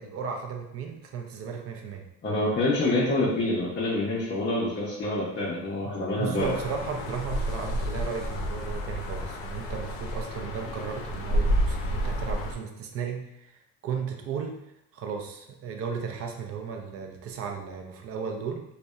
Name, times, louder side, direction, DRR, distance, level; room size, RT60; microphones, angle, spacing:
voice 1, 0.0-2.0 6.2-14.6 14.9-18.6, right 6 dB, 45° right, 3 dB, 0.4 m, -35 dB
voice 2, 2.2-6.5, left 2 dB, 30° left, -7 dB, 0.5 m, -26 dB
sound 1, 6.4-12.5, equal, 80° left, 0.5 m, -30 dB
2.6 x 2.1 x 2.2 m, 0.82 s
cardioid pair, 115°, 35 cm